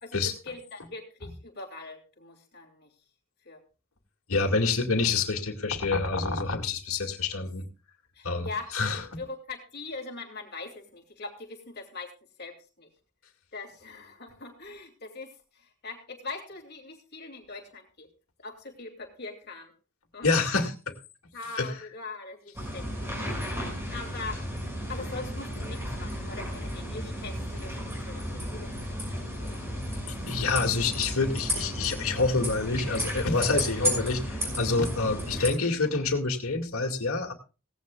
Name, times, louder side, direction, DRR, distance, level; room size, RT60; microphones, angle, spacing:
voice 1, 0.0-2.9 3.4-3.6 8.1-8.7 9.2-12.1 12.4-12.9 13.5-18.1 18.4-19.7 20.1-20.4 21.3-24.4 24.9-29.6 35.3-35.6, left 3 dB, 50° left, 3 dB, 2.7 m, -42 dB
voice 2, 4.3-7.6 8.2-8.5 8.7-9.2 20.2-20.7 21.6-21.7 30.1-37.3, left 3 dB, 90° left, 2 dB, 2.2 m, -27 dB
sound 1, 22.5-35.5, equal, 10° right, 6.3 m, -33 dB
17.5 x 16.0 x 2.4 m, 0.34 s
head